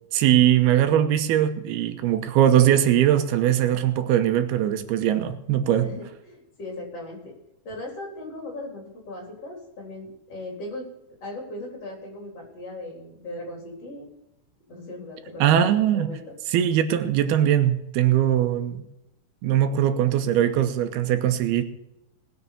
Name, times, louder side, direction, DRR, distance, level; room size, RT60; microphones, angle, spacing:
voice 1, 0.1-5.9 15.4-16.1 16.5-18.8 19.4-21.6, right 11 dB, 90° right, 2.9 m, -21 dB
voice 2, 5.8-7.3 7.6-10.9 11.2-14.1 14.7-15.7 15.9-16.3, left 2 dB, 40° left, 4.6 m, -38 dB
19.5 x 6.8 x 6.7 m
omnidirectional pair, 4.5 m